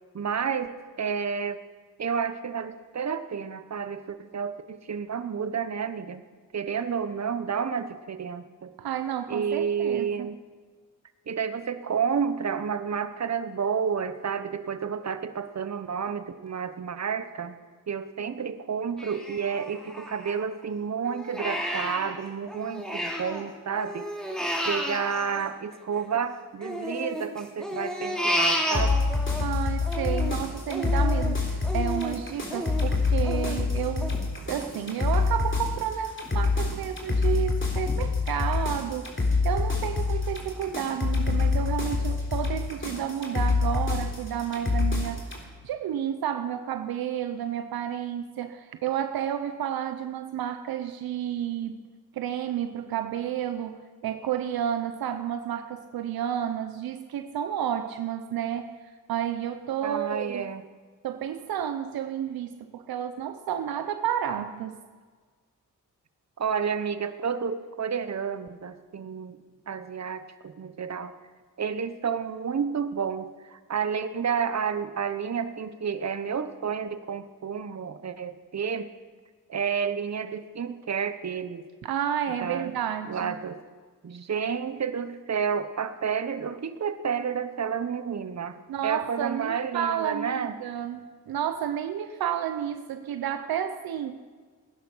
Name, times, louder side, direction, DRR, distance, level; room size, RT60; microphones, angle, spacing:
voice 1, 0.1-0.7 1.0-1.6 2.0-6.2 6.5-8.7 9.3-10.4 11.3-17.6 17.9-24.1 24.7-29.0 59.8-60.6 66.4-69.4 69.7-71.1 71.6-78.9 79.5-81.7 82.4-82.7 83.1-83.6 84.0-88.6 88.8-90.5, right 6 dB, 50° right, 11 dB, 1.1 m, -30 dB
voice 2, 8.8-10.3 29.4-34.2 34.5-45.3 45.6-51.8 52.1-58.7 59.1-60.5 61.0-64.8 81.8-83.4 88.7-94.2, right 9 dB, 85° right, 9 dB, 0.8 m, -31 dB
Crying sobbing, 19.0-20.6 21.0-23.4 23.7-26.2 26.6-29.4 29.8-35.3 35.7-35.8 36.2-36.8 37.3-37.4 37.9-38.0, equal, ahead, 3.1 m, -32 dB
sound 1, 28.7-45.4, left 3 dB, 35° left, 3.6 m, -26 dB
19.0 x 10.5 x 5.6 m, 1.5 s
cardioid pair, 50°, 35 cm